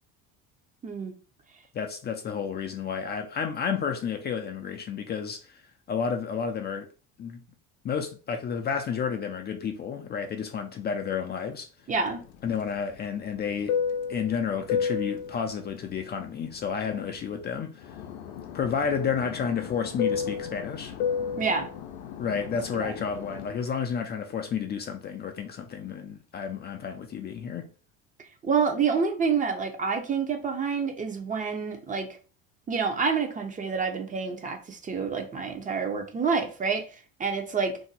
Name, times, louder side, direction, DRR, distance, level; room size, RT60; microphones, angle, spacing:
voice 1, 1.7-5.6 5.9-6.9 7.2-7.4 7.8-11.7 12.4-13.8 14.1-17.9 18.5-21.0 22.2-27.7, left 6 dB, 30° left, 0.4 m, -31 dB
voice 2, 11.9-12.2 21.4-21.7 22.8-22.9 28.2-32.1 32.7-36.9 37.2-37.8, right 5 dB, 25° right, 0.7 m, -28 dB
Fixed-wing aircraft airplane, 12.1-17.5 17.8-23.6, left 7 dB, 90° left, 0.5 m, -33 dB
2.6 x 2.1 x 3.9 m
supercardioid pair, 100°, 31 cm